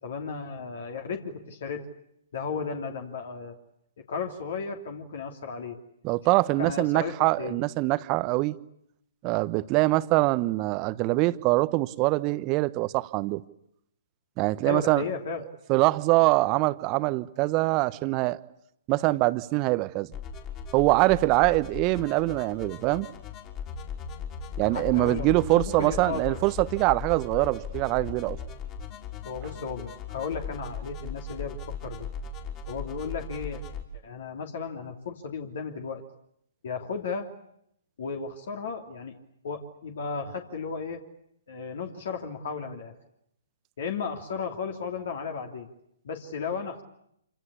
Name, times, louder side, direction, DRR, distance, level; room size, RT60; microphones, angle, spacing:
voice 1, 0.0-1.9 2.3-3.6 4.1-5.8 6.6-7.6 14.6-15.4 24.7-26.4 29.2-32.1 32.7-33.6 34.0-36.0 36.6-37.3 38.0-39.2 39.4-41.0 41.5-42.9 43.8-45.7 46.0-46.8, left 5 dB, 55° left, 4 dB, 3.0 m, -34 dB
voice 2, 6.0-8.5 9.2-13.4 14.4-15.0 15.7-18.4 18.9-20.1 20.7-23.1 24.6-28.4, right 21 dB, 30° right, 15 dB, 1.1 m, -24 dB
sound 1, 20.1-33.8, left 5 dB, 30° left, 3.9 m, -38 dB
27.5 x 26.0 x 8.4 m, 0.75 s
figure-of-eight pair, 125°, 0 cm